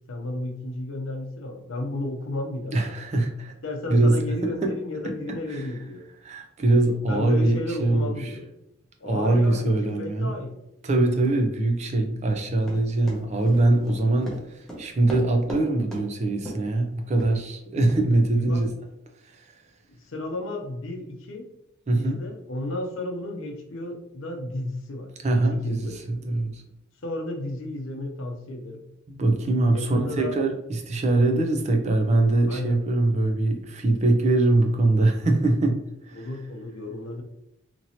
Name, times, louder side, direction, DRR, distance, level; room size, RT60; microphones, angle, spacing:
voice 1, 0.1-2.8 3.6-6.1 7.1-8.5 9.0-10.6 18.4-18.6 19.9-21.5 21.9-25.1 25.5-26.0 27.0-28.8 29.6-30.4 32.5-32.8 36.1-37.2, left 2 dB, 70° left, 3 dB, 0.6 m, -33 dB
voice 2, 2.7-3.5 3.9-4.2 4.6-4.7 5.0-5.7 6.2-8.3 9.0-10.3 10.8-18.7 19.3-19.5 21.9-22.2 25.2-26.6 29.1-35.8 36.1-36.3, right 2 dB, 35° right, 4 dB, 0.4 m, -23 dB
Run, 12.6-15.6 15.9-16.1 16.5-16.7 17.2-17.3 17.9-18.0, right 1 dB, ahead, 0.7 m, -36 dB
2.9 x 2.7 x 2.7 m, 0.85 s
head